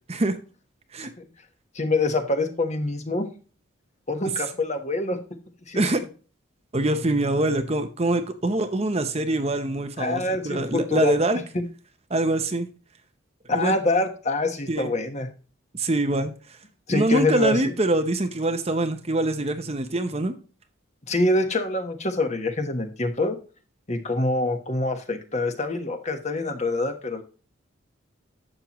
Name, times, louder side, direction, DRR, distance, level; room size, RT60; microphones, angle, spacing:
voice 1, 1.7-3.3 4.1-5.2 5.7-5.8 10.0-11.1 11.5-11.6 13.5-15.3 16.9-17.7 21.1-23.4 23.9-27.2, left 2 dB, 35° left, 6 dB, 1.3 m, -25 dB
voice 2, 6.7-11.4 12.1-12.7 13.5-13.7 14.7-14.9 15.7-16.6 16.9-20.4, right 2 dB, 30° right, 8 dB, 0.7 m, -24 dB
11.5 x 7.5 x 3.1 m, 0.36 s
head